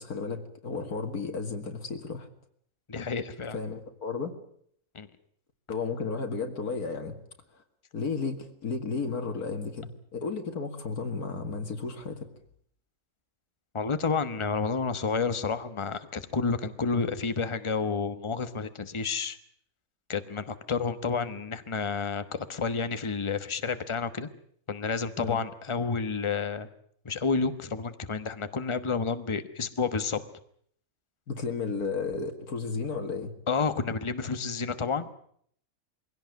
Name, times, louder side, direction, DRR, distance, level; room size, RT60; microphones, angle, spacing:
voice 1, 0.0-2.3 3.5-4.3 5.7-7.2 7.5-7.6 7.9-12.3 25.2-25.4 31.3-33.3, left 4 dB, 80° left, 5 dB, 2.5 m, -33 dB
voice 2, 2.9-3.6 4.9-5.1 13.7-19.4 20.1-24.3 24.7-26.7 27.0-30.2 33.5-35.1, left 5 dB, 20° left, 11 dB, 1.1 m, -30 dB
23.0 x 17.0 x 9.2 m, 0.64 s
omnidirectional pair, 1.6 m